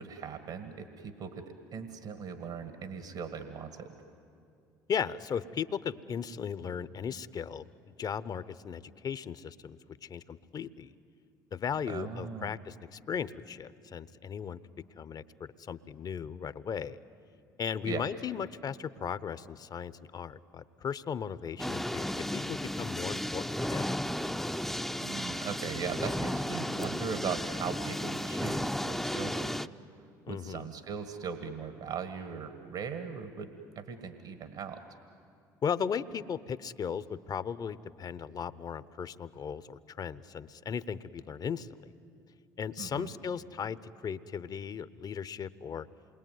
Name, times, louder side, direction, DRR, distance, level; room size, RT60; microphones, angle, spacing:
voice 1, 0.0-3.9 11.9-12.6 17.8-18.1 25.0-29.8 30.3-33.5 33.8-34.8 42.8-43.1, right 6 dB, 60° right, 8 dB, 1.8 m, -39 dB
voice 2, 4.9-7.6 8.0-10.9 11.5-14.6 15.0-17.0 17.6-24.0 30.3-30.7 35.6-41.9 42.6-45.9, left 7 dB, 40° left, 16 dB, 0.9 m, -37 dB
sound 1, 21.6-29.7, left 1 dB, ahead, 0.6 m, -34 dB
28.0 x 22.0 x 9.4 m, 2.5 s
hypercardioid pair, 65°, 10 cm